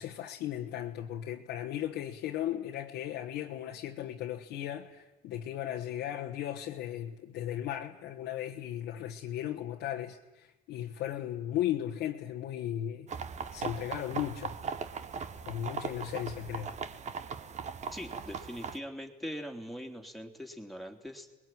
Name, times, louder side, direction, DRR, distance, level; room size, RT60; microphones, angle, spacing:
voice 1, 0.0-13.1 13.5-14.6 15.4-16.8, left 11 dB, 85° left, 1.5 m, -36 dB
sound 1, 13.1-18.8, right 6 dB, 45° right, 1.3 m, -39 dB
voice 2, 17.9-21.4, equal, ahead, 3.1 m, -42 dB
26.0 x 21.0 x 9.3 m
cardioid pair, 110°, 17 cm